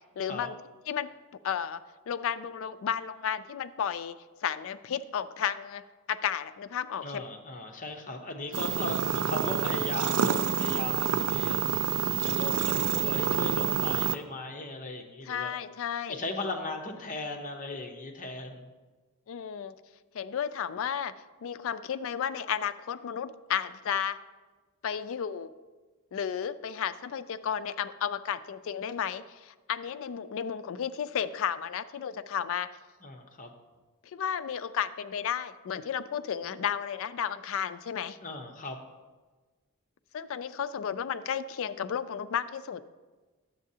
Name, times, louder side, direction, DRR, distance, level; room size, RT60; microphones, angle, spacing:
voice 1, 0.2-0.6 0.9-1.1 1.4-4.2 4.4-7.2 15.3-16.2 19.3-19.7 20.1-21.1 21.4-24.2 24.8-25.5 26.1-32.7 34.1-38.2 40.1-42.8, left 8 dB, 65° left, 12 dB, 0.3 m, -33 dB
voice 2, 7.0-11.6 12.2-15.5 16.1-18.7 33.0-33.5 38.2-38.8, left 2 dB, 35° left, 3 dB, 0.8 m, -37 dB
sound 1, 8.5-14.1, right 8 dB, 75° right, 0.4 m, -28 dB
10.5 x 7.4 x 2.7 m, 1.3 s
head